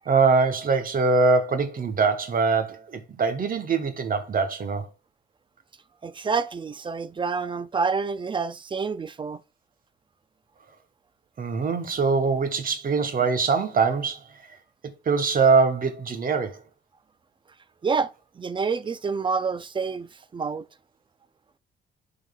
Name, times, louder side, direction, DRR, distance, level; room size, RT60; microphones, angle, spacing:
voice 1, 0.1-4.9 11.4-14.5 14.8-16.6, right 4 dB, 45° right, 1.0 m, -23 dB
voice 2, 6.0-9.4 17.8-20.7, right 5 dB, 25° right, 0.4 m, -28 dB
11.0 x 3.9 x 2.3 m
cardioid pair, 90°, 20 cm